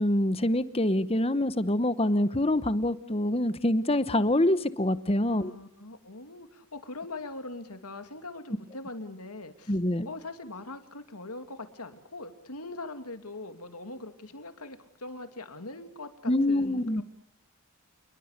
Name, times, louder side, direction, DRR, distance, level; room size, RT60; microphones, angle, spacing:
voice 1, 0.0-5.5 9.7-10.1 16.3-17.0, left 1 dB, 25° left, 14 dB, 1.0 m, -25 dB
voice 2, 5.4-9.8 10.0-17.0, left 2 dB, 90° left, 8 dB, 2.7 m, -42 dB
29.0 x 22.0 x 6.7 m, 0.63 s
head